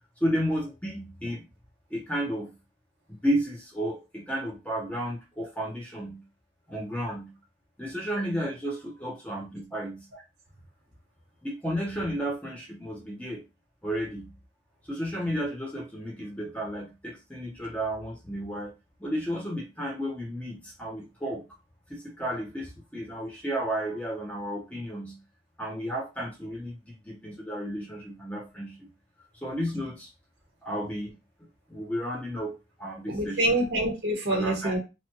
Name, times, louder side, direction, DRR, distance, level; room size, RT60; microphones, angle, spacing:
voice 1, 0.2-1.5 1.9-2.5 3.1-6.2 6.7-7.3 7.8-10.1 11.4-13.4 13.8-14.3 14.9-18.7 19.0-21.4 21.9-25.2 25.6-26.7 27.0-28.9 29.4-30.1 30.6-31.2 31.7-33.7 34.3-34.7, equal, 10° left, -2 dB, 0.7 m, -32 dB
voice 2, 33.1-34.8, right 1 dB, 75° right, 0 dB, 1.1 m, -26 dB
2.9 x 2.3 x 2.9 m, 0.27 s
head